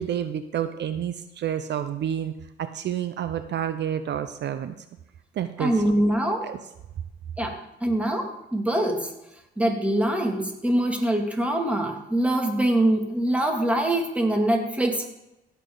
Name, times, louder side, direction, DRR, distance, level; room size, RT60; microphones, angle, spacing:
voice 1, 0.0-4.7 5.3-5.8 6.4-6.6, right 9 dB, 60° right, 10 dB, 0.7 m, -29 dB
voice 2, 5.6-6.5 7.4-9.1 9.6-15.1, right 1 dB, 5° right, 3 dB, 2.2 m, -24 dB
16.0 x 7.3 x 3.9 m, 0.91 s
cardioid pair, 90°, 20 cm